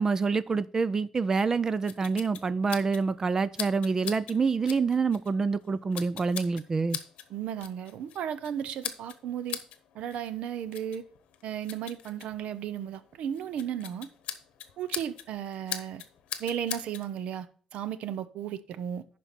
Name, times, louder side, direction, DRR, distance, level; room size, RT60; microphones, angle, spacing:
voice 1, 0.0-7.0, right 4 dB, 30° right, 0.4 m, -27 dB
sound 1, 1.4-17.1, left 10 dB, 85° left, 0.9 m, -43 dB
voice 2, 7.3-9.6 9.9-11.0 11.4-14.1 14.8-16.0 16.4-17.5 17.7-19.1, right 9 dB, 80° right, 0.7 m, -34 dB
11.0 x 4.6 x 4.1 m
cardioid pair, 135°, 2 cm